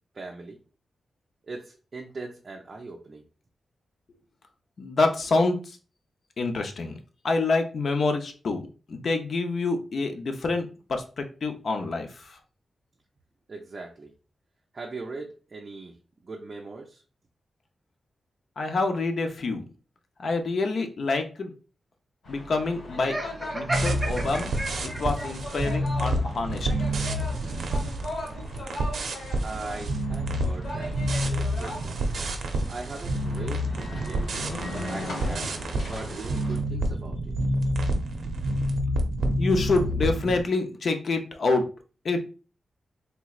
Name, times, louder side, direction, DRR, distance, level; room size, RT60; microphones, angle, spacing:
voice 1, 0.1-0.6 1.4-3.2 13.5-14.1 14.7-15.9 16.2-17.0 29.4-32.1 32.7-34.3 34.7-35.5 35.9-37.3, right 3 dB, 35° right, 1 dB, 0.4 m, -40 dB
voice 2, 4.8-5.8 6.4-7.0 7.2-8.6 8.9-12.4 18.6-19.6 20.2-21.5 22.3-23.2 23.5-24.5 24.8-26.7 39.4-41.6 42.0-42.2, left 3 dB, 55° left, 5 dB, 0.5 m, -27 dB
sound 1, 22.2-36.6, left 1 dB, 75° left, 1.5 m, -39 dB
Laughter, 23.0-25.3, right 1 dB, 20° right, 0.9 m, -32 dB
sound 2, 23.7-40.4, right 1 dB, 85° right, 0.5 m, -28 dB
3.3 x 3.0 x 2.3 m, 0.35 s
wide cardioid pair, 155°, 0 cm